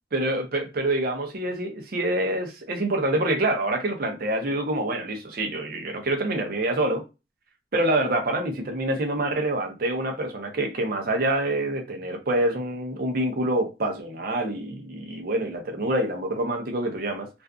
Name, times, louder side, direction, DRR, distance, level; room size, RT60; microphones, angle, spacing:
voice 1, 0.1-7.0 7.7-17.3, right 1 dB, 55° right, 0.6 m, -26 dB
2.5 x 2.3 x 2.3 m
head